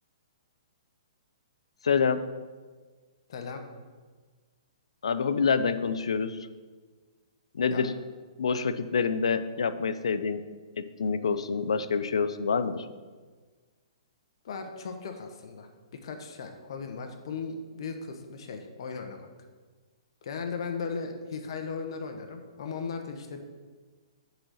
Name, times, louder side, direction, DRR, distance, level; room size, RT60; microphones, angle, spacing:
voice 1, 1.8-2.3 5.0-6.5 7.5-7.9 8.4-10.4 10.8-12.9, left 5 dB, 80° left, 12 dB, 0.5 m, -27 dB
voice 2, 3.3-3.6 7.7-7.8 14.4-15.7 16.0-19.3 20.2-23.4, left 5 dB, 60° left, 5 dB, 1.1 m, -37 dB
7.7 x 4.2 x 6.4 m, 1.4 s
hypercardioid pair, 140°, 3 cm